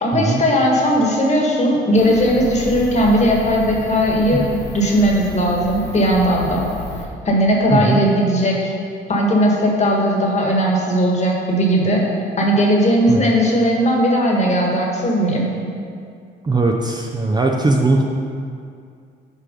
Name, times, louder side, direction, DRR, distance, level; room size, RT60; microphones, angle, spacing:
voice 1, 0.0-6.7 7.2-8.7 9.1-12.0 12.4-15.5, equal, 35° left, -1 dB, 1.5 m, -17 dB
sound 1, 1.9-7.1, left 2 dB, 65° left, 1.0 m, -32 dB
voice 2, 7.7-8.1 13.1-13.3 16.4-18.0, right 2 dB, 20° right, 1 dB, 0.5 m, -19 dB
6.7 x 4.6 x 5.2 m, 2.3 s
cardioid pair, 90°, 20 cm